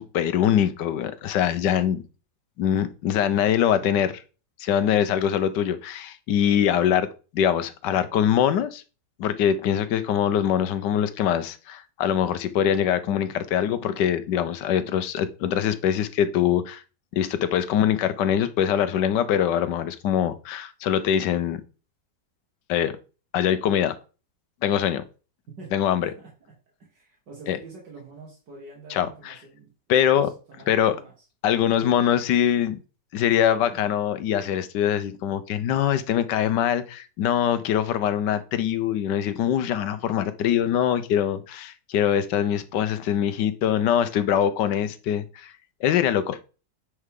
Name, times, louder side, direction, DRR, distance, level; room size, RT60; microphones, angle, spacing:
voice 1, 0.0-2.0 2.6-4.2 4.6-7.1 7.3-8.8 9.2-16.8 17.1-21.6 22.7-22.9 23.3-23.9 24.6-25.0 25.7-26.1 27.5-27.6 28.9-29.3 29.9-30.3 30.7-31.0 31.4-32.8 33.1-45.5 45.8-46.4, left 9 dB, 80° left, 1.3 m, -23 dB
voice 2, 26.8-31.1, right 3 dB, 75° right, 2.4 m, -46 dB
9.7 x 4.7 x 3.6 m
omnidirectional pair, 1.9 m